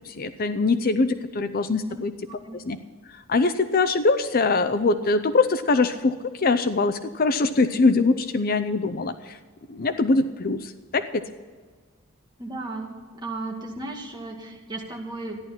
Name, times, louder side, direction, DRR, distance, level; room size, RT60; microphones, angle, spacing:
voice 1, 0.0-2.1 2.5-2.8 3.3-9.4 9.7-11.2, left 3 dB, 45° left, 10 dB, 0.6 m, -23 dB
voice 2, 12.4-12.9 13.2-15.4, right 2 dB, 20° right, 0 dB, 2.1 m, -34 dB
14.0 x 11.0 x 5.8 m, 1.5 s
head